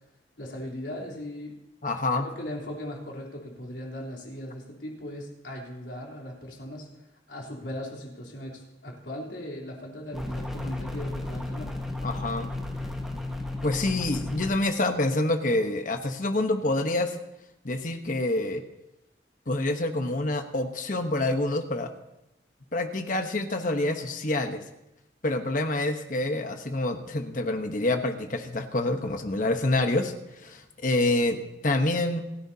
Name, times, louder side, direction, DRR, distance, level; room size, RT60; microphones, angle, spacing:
voice 1, 0.4-1.5 2.2-11.7, left 1 dB, 75° left, -2 dB, 3.6 m, -38 dB
voice 2, 1.8-2.3 12.0-12.5 13.6-17.2 17.6-18.6 19.5-21.9 22.7-24.6 25.2-32.2, left 2 dB, 45° left, 6 dB, 1.1 m, -27 dB
sound 1, 10.1-14.5, left 2 dB, ahead, 1.5 m, -34 dB
28.5 x 10.0 x 2.8 m, 0.89 s
head